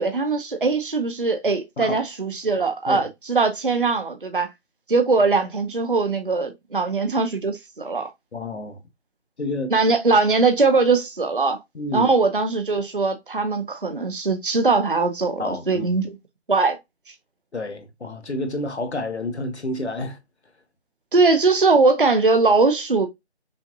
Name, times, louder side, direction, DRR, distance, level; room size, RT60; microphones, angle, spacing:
voice 1, 0.0-4.5 4.9-8.1 9.7-11.6 11.9-16.2 16.5-16.8 21.1-23.1, right 3 dB, 50° right, 0.7 m, -21 dB
voice 2, 8.3-8.8 9.4-9.8 11.7-12.1 15.4-16.0 17.5-20.2, left 2 dB, 70° left, 1.2 m, -29 dB
5.6 x 2.5 x 2.6 m
figure-of-eight pair, 180°, 34 cm